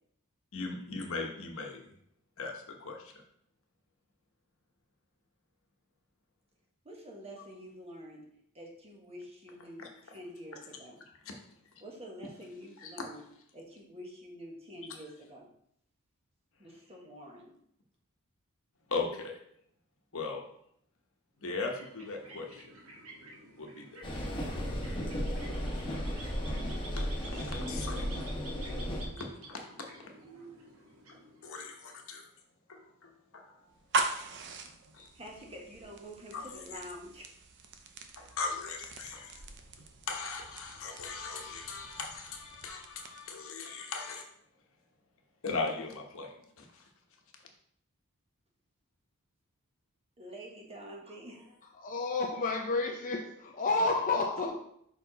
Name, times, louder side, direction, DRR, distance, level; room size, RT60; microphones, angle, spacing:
voice 1, 0.5-1.8 2.4-3.1 9.8-9.9 12.8-12.9 18.9-19.3 20.1-20.4 21.4-22.7 23.6-24.3 25.6-25.7 27.0-28.1 28.8-29.6 30.0-30.1 31.4-32.2 32.7-33.5 34.9-35.1 36.3-36.4 38.2-39.4 40.1-44.2 45.4-46.3 46.6-46.8, left 4 dB, 65° left, 2 dB, 1.1 m, -39 dB
voice 2, 6.8-8.3 8.5-11.0 11.8-13.2 13.5-15.5 16.6-17.6 35.1-37.4 50.2-51.7, equal, 30° right, -1 dB, 1.3 m, -47 dB
sound 1, 21.5-31.8, right 1 dB, 75° right, 1.4 m, -50 dB
sound 2, 24.0-29.1, equal, 25° left, 1.1 m, -35 dB
sound 3, 33.7-43.4, right 3 dB, 55° right, 0.7 m, -40 dB
voice 3, 51.6-54.5, left 3 dB, 40° left, 2 dB, 0.5 m, -30 dB
5.7 x 4.6 x 4.0 m, 0.70 s
head